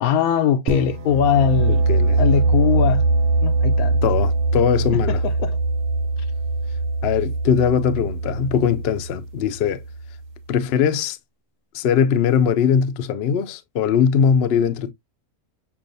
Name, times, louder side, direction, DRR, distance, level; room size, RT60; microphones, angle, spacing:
voice 1, 0.0-1.8 2.2-3.0 3.4-4.0 5.4-5.6, left 8 dB, 80° left, 1.1 m, -20 dB
sound 1, 0.7-10.3, right 3 dB, 70° right, 0.9 m, -22 dB
voice 2, 1.7-2.2 4.0-5.2 7.0-9.8 10.5-11.2 11.7-14.9, left 7 dB, 60° left, 0.7 m, -20 dB
7.0 x 2.4 x 2.5 m
omnidirectional pair, 1.5 m